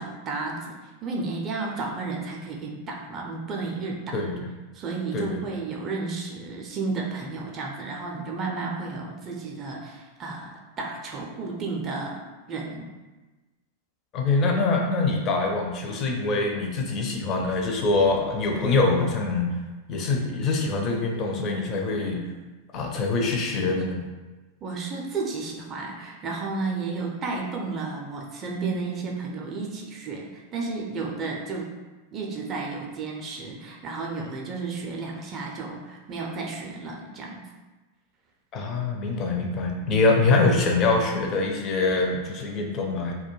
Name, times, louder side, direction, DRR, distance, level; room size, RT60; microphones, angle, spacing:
voice 1, 0.0-4.2 4.7-12.2 12.5-12.9 24.6-31.7 32.1-37.5, right 3 dB, 30° right, -1 dB, 0.4 m, -32 dB
voice 2, 4.1-4.5 5.1-5.4 14.1-19.5 19.9-22.2 22.7-24.0 38.5-43.1, left 3 dB, 35° left, 1 dB, 0.4 m, -24 dB
2.2 x 2.1 x 2.9 m, 1.2 s
figure-of-eight pair, 90°, 0 cm